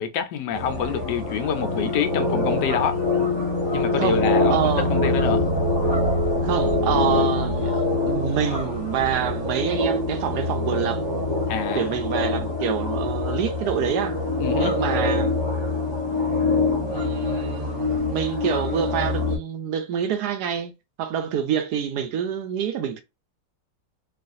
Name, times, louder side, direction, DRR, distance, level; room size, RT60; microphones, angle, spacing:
voice 1, 0.0-3.0 3.7-5.4 11.5-11.9 14.4-14.8, left 8 dB, 80° left, 1.2 m, -26 dB
sound 1, 0.5-19.4, left 2 dB, 20° left, 0.7 m, -24 dB
voice 2, 4.5-4.9 6.4-11.0 11.7-14.1 14.6-15.3 16.9-20.7 21.0-23.0, right 8 dB, 75° right, 1.1 m, -27 dB
3.1 x 2.4 x 2.5 m
omnidirectional pair, 1.9 m